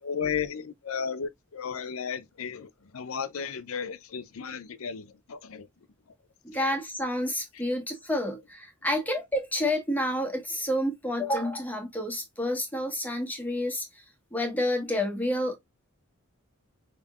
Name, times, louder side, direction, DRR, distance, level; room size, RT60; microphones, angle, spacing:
voice 1, 0.0-5.7, left 6 dB, 80° left, 0.6 m, -34 dB
voice 2, 6.4-13.8 14.3-15.6, left 1 dB, 10° left, 1.3 m, -29 dB
5.2 x 3.0 x 2.4 m
head